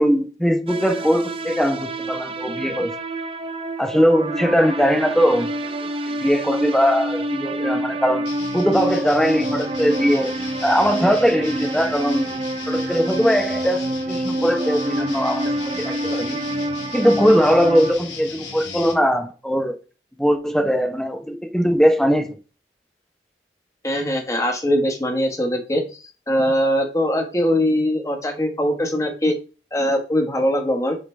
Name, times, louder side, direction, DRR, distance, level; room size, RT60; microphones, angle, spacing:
voice 1, 0.0-2.9 3.8-5.9 6.2-8.3 8.5-10.3 10.6-16.4 16.9-19.7 20.2-22.4, equal, 5° left, 0.7 m, -20 dB
sound 1, 0.7-17.9, right 1 dB, 30° right, 0.5 m, -27 dB
sound 2, 8.2-18.9, left 4 dB, 90° left, 2.3 m, -36 dB
voice 2, 23.8-25.8 26.3-29.3 29.7-31.0, equal, 20° left, 1.2 m, -21 dB
8.1 x 3.8 x 3.2 m
head